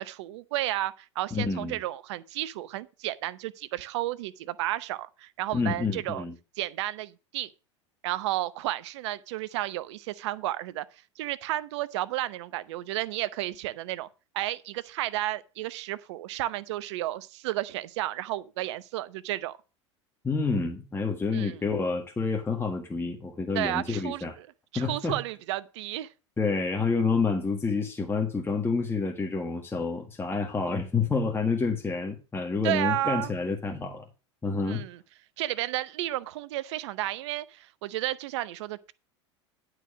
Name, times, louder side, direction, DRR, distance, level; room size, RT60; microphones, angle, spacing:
voice 1, 0.0-6.2 6.6-7.5 8.0-10.8 11.2-14.1 14.3-19.6 21.3-21.6 23.5-24.5 24.7-26.1 32.6-33.3 34.7-35.0 35.4-38.9, right 15 dB, 70° right, 0.8 m, -32 dB
voice 2, 1.3-1.8 5.5-6.3 20.2-24.3 24.7-25.2 26.4-34.0 34.4-34.8, left 4 dB, 15° left, 1.7 m, -28 dB
11.0 x 4.9 x 6.1 m
hypercardioid pair, 90°, 15 cm